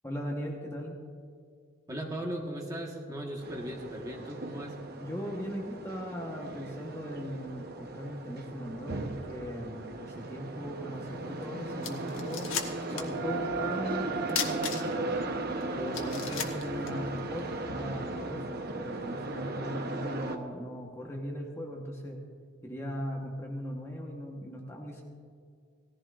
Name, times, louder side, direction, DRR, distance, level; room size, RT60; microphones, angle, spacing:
voice 1, 0.0-1.0 5.0-12.5 12.8-15.2 15.7-22.2 22.6-25.0, equal, 15° left, -1 dB, 1.1 m, -39 dB
voice 2, 1.9-4.7, right 1 dB, 20° right, -1 dB, 1.4 m, -37 dB
sound 1, 3.4-20.4, right 2 dB, 50° right, 0.9 m, -37 dB
sound 2, 11.4-11.5 11.8-13.2 13.5-13.6 14.3-15.2 15.6-15.7 15.9-17.5, left 8 dB, 85° left, 1.2 m, -35 dB
18.0 x 14.5 x 2.5 m, 2.2 s
head